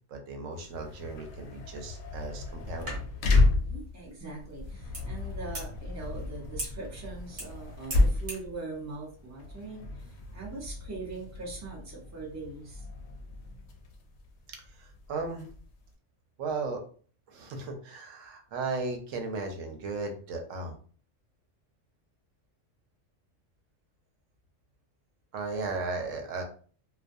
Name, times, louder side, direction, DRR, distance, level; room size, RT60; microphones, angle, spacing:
voice 1, 0.1-3.0 14.7-15.5 16.4-16.8 17.3-20.7 25.3-26.4, right 3 dB, 85° right, 3 dB, 1.0 m, -36 dB
sound 1, 0.5-15.9, left 2 dB, 65° left, 0.7 m, -32 dB
sound 2, 2.7-8.5, right 1 dB, 60° right, 1.1 m, -43 dB
voice 2, 3.5-12.9, right 3 dB, 20° right, -3 dB, 0.5 m, -42 dB
2.5 x 2.2 x 2.5 m, 0.43 s
omnidirectional pair, 1.3 m